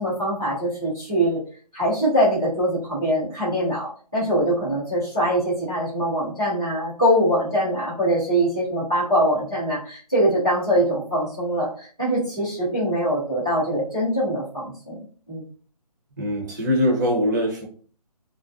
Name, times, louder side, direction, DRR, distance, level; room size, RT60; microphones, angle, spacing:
voice 1, 0.0-1.4 1.7-15.0 15.3-15.4, equal, 10° right, -16 dB, 0.3 m, -23 dB
voice 2, 16.2-17.6, left 1 dB, 25° right, -1 dB, 0.7 m, -22 dB
2.4 x 2.1 x 2.4 m, 0.44 s
hypercardioid pair, 165°, 21 cm